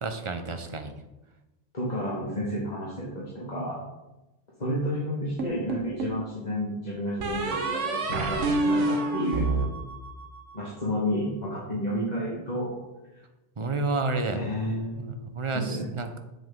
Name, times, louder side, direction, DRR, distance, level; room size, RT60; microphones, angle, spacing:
voice 1, 0.0-1.0 13.6-14.5 15.0-16.2, right 3 dB, 30° right, 7 dB, 0.7 m, -30 dB
voice 2, 1.7-3.8 4.6-9.5 10.5-12.8 13.1-13.2 14.3-15.1 15.5-15.9, equal, 35° left, -6 dB, 1.8 m, -31 dB
sound 1, 5.4-6.2 7.2-10.5, right 2 dB, 90° right, 1.4 m, -28 dB
8.1 x 7.6 x 3.7 m, 1.0 s
omnidirectional pair, 1.2 m